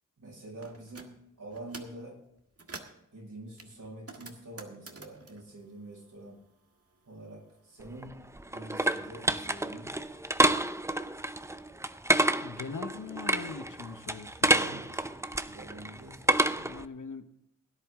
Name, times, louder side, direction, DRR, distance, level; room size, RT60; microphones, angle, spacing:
voice 1, 0.2-1.1 1.4-2.2 3.1-6.4 7.1-8.2 8.5-9.9 14.4-15.1 15.4-16.3, right 2 dB, 80° right, -2 dB, 5.9 m, -46 dB
sound 1, 0.6-1.1 1.5-2.0 2.4-3.0 3.6-6.5 6.8-7.9, right 3 dB, 50° right, 1.7 m, -48 dB
sound 2, 7.8-16.8, right 1 dB, 10° right, 0.6 m, -29 dB
voice 2, 12.4-14.5 16.6-17.3, left 5 dB, 75° left, 8 dB, 1.2 m, -41 dB
17.0 x 10.5 x 3.7 m, 0.79 s
wide cardioid pair, 70°, 31 cm